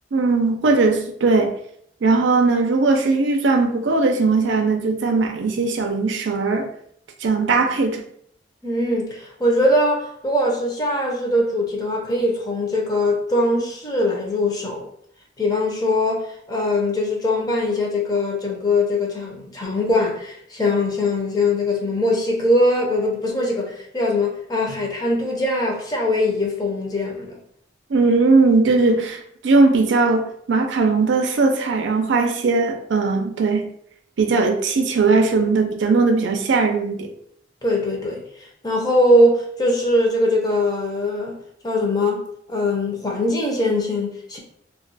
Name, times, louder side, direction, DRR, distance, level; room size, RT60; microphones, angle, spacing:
voice 1, 0.1-1.5 2.0-6.7 7.2-8.0 27.9-33.7 34.2-37.1, right 3 dB, 75° right, 4 dB, 0.5 m, -19 dB
voice 2, 8.6-14.8 15.4-27.4 37.6-41.4 41.6-42.2 42.5-44.4, left 1 dB, 20° left, -1 dB, 0.7 m, -21 dB
2.3 x 2.2 x 3.9 m, 0.68 s
head